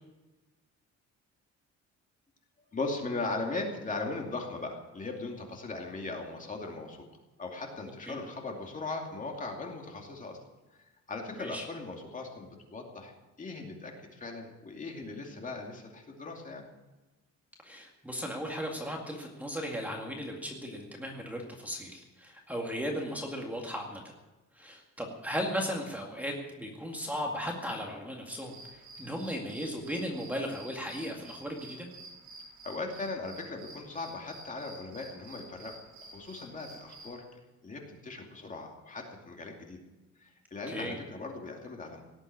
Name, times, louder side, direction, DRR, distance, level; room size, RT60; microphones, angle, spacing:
voice 1, 2.7-7.1 7.4-10.4 11.1-13.1 13.4-16.7 32.6-37.2 37.6-39.8 40.2-42.0, left 3 dB, 25° left, 1 dB, 2.6 m, -38 dB
voice 2, 17.6-24.0 24.6-31.9 40.7-41.0, equal, 5° right, 0 dB, 2.1 m, -36 dB
sound 1, 28.3-37.2, right 2 dB, 75° right, 7.5 m, -50 dB
18.0 x 8.0 x 9.7 m, 1.1 s
cardioid pair, 155°, 29 cm